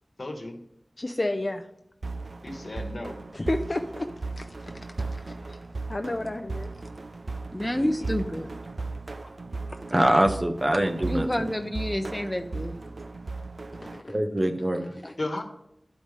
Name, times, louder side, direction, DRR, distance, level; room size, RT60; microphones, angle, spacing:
voice 1, 0.2-0.6 2.4-3.2 7.8-8.1 15.2-15.4, left 2 dB, 60° left, 4 dB, 1.3 m, -34 dB
voice 2, 1.0-1.6 3.3-4.1 4.3-4.9 5.1-5.6 5.9-6.9 13.8-14.2 14.7-15.1, left 2 dB, 45° left, 5 dB, 0.5 m, -32 dB
sound 1, 2.0-14.0, right 3 dB, 65° right, 0.4 m, -36 dB
voice 3, 7.5-8.5 11.1-12.8, left 1 dB, 15° left, 6 dB, 0.8 m, -29 dB
voice 4, 9.9-11.3 14.1-14.8, right 1 dB, 35° right, 5 dB, 0.9 m, -23 dB
12.0 x 5.2 x 3.2 m, 0.81 s
wide cardioid pair, 55°, 0 cm